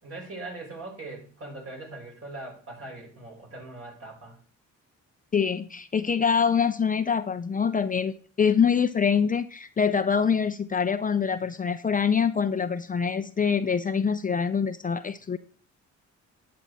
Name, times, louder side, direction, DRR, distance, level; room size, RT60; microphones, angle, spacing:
voice 1, 0.0-4.4, right 2 dB, 50° right, -1 dB, 5.7 m, -41 dB
voice 2, 5.3-15.4, left 6 dB, 25° left, 10 dB, 0.6 m, -25 dB
10.0 x 7.5 x 4.2 m, 0.40 s
cardioid pair, 90°, 30 cm